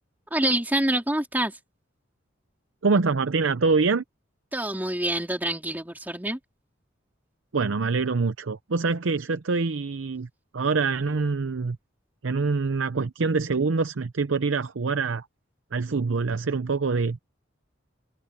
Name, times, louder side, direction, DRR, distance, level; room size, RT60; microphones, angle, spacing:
voice 1, 0.3-1.6 4.5-6.4, right 1 dB, 10° right, 2.8 m, -26 dB
voice 2, 2.8-4.0 7.5-11.8 12.2-15.3 15.7-17.2, right 4 dB, 75° right, 0.7 m, -25 dB
head